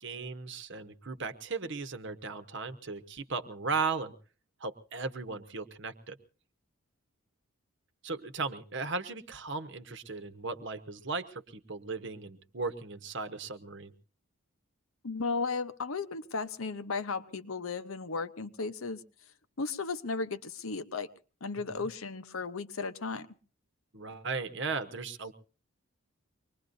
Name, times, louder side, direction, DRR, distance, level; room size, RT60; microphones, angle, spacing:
voice 1, 0.0-4.1 4.6-6.2 8.0-13.9 21.5-21.9 23.9-25.3, right 4 dB, 55° right, 11 dB, 1.1 m, -36 dB
voice 2, 15.0-19.0 19.6-21.1 21.4-23.3, left 4 dB, 70° left, 11 dB, 0.8 m, -35 dB
24.5 x 20.5 x 2.6 m, 0.37 s
head